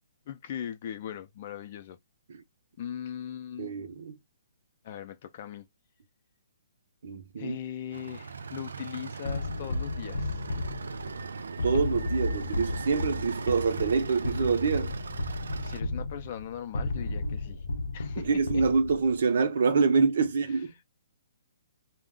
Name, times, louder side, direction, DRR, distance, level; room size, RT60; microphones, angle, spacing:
voice 1, 0.3-2.0 2.8-3.7 4.8-5.7 7.4-10.4 15.6-17.6 17.9-18.6 20.4-20.8, left 9 dB, 35° left, 0.4 m, -39 dB
voice 2, 3.6-4.2 7.0-7.6 11.6-14.9 18.3-20.8, right 5 dB, 55° right, 0.7 m, -26 dB
sound 1, 7.9-15.8, right 5 dB, 90° right, 0.3 m, -40 dB
sound 2, 9.2-19.2, left 2 dB, 85° left, 0.6 m, -34 dB
2.4 x 2.0 x 3.7 m
hypercardioid pair, 165°, 0 cm